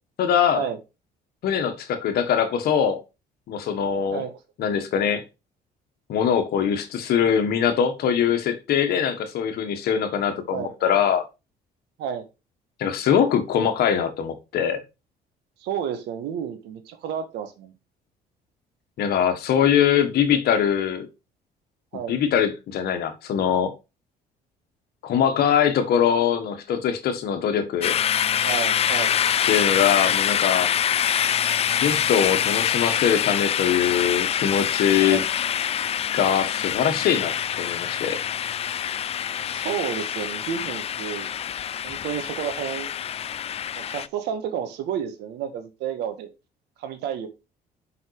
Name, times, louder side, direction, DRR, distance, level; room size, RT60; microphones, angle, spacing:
voice 1, 0.2-0.7 1.4-3.0 3.5-4.2 4.6-5.2 6.1-11.2 12.8-14.8 19.0-21.1 22.1-23.7 25.0-27.9 29.5-30.7 31.8-35.2 36.1-38.2, left 8 dB, 70° left, 1.6 m, -22 dB
voice 2, 15.6-17.7 21.9-22.1 28.4-29.1 35.0-35.3 39.4-41.3 41.8-42.9 43.7-46.3 46.8-47.3, right 8 dB, 80° right, 1.6 m, -31 dB
sound 1, 27.8-44.1, left 9 dB, 35° left, 0.4 m, -25 dB
5.6 x 5.4 x 4.8 m
cardioid pair, 110°, 17 cm